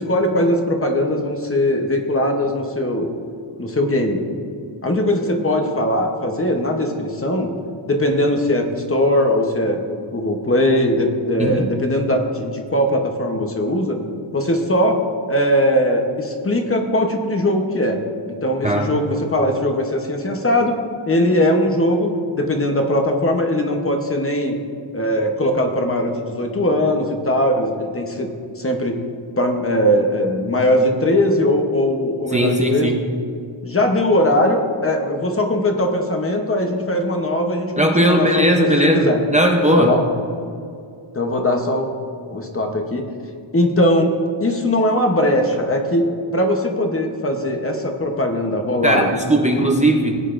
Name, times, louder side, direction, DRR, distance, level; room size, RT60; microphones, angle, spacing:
voice 1, 0.0-3.1 3.6-4.2 4.8-7.5 7.9-9.8 10.1-14.0 14.3-15.0 15.3-18.0 18.3-20.8 21.1-22.1 22.3-24.6 24.9-28.3 28.6-29.0 29.4-32.9 33.6-37.7 38.0-38.7 38.9-39.2 39.7-40.0 41.1-41.9 42.3-43.1 43.5-44.1 44.4-49.1 49.5-49.6, left 1 dB, 25° left, 3 dB, 0.9 m, -20 dB
voice 2, 32.3-33.0 37.8-39.9 48.8-50.2, right 1 dB, 15° right, 0 dB, 0.6 m, -17 dB
18.5 x 9.0 x 2.5 m, 2.4 s
wide cardioid pair, 160°, 50 cm